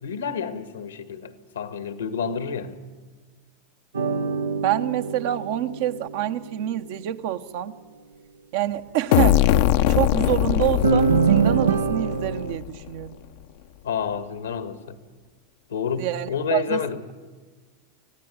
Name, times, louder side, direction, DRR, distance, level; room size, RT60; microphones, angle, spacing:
voice 1, 0.0-2.8 13.8-15.0 15.7-17.0, left 7 dB, 85° left, 1.8 m, -29 dB
sound 1, 3.9-6.5 10.8-12.6, right 5 dB, 90° right, 0.8 m, -23 dB
voice 2, 4.6-7.7 8.5-9.4 9.9-13.2 16.0-16.9, right 12 dB, 65° right, 1.0 m, -26 dB
sound 2, 9.1-12.8, left 12 dB, 60° left, 0.7 m, -21 dB
24.5 x 15.5 x 9.5 m
hypercardioid pair, 95°, 0 cm